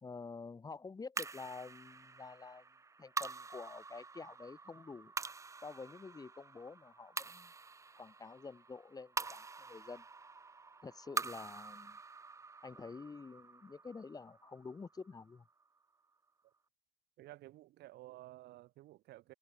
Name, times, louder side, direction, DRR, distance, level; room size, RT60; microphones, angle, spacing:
voice 1, 0.0-2.6 3.0-5.1 5.6-7.5 8.0-10.0 10.8-12.0 12.6-15.4, left 4 dB, 20° left, 1.0 m, -49 dB
sound 1, 1.2-15.7, right 4 dB, 20° right, 0.6 m, -46 dB
voice 2, 17.2-19.3, right 16 dB, 80° right, 1.7 m, -53 dB
cardioid pair, 110°, 17 cm